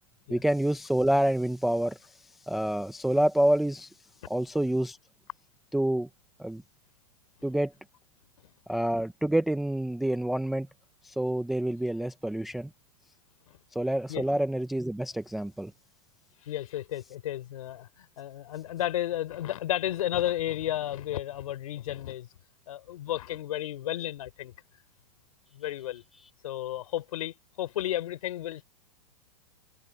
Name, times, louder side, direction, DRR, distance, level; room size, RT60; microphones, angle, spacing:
voice 1, 0.3-2.1 2.5-3.9 4.3-5.0 5.7-6.1 6.4-6.6 7.4-7.7 8.7-10.7 11.0-12.7 13.7-15.7, right 1 dB, ahead, 0.3 m, -27 dB
voice 2, 16.4-22.3 22.7-24.5 25.5-26.0 26.4-28.7, left 13 dB, 65° left, 3.6 m, -33 dB
supercardioid pair, 175°, 19 cm